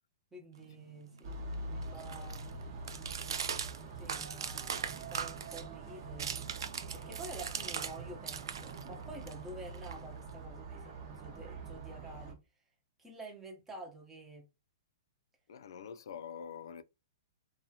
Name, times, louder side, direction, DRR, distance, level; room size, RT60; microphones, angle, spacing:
voice 1, 0.3-1.3 1.6-2.7 3.9-6.3 6.9-12.4 13.0-14.4, right 2 dB, 10° right, 0.8 m, -49 dB
sound 1, 0.6-8.0 8.2-10.4, right 7 dB, 80° right, 0.4 m, -41 dB
sound 2, 1.2-12.3, right 3 dB, 45° right, 0.8 m, -45 dB
voice 2, 15.5-16.8, left 7 dB, 70° left, 0.3 m, -45 dB
2.7 x 2.3 x 2.7 m
hypercardioid pair, 140°, 2 cm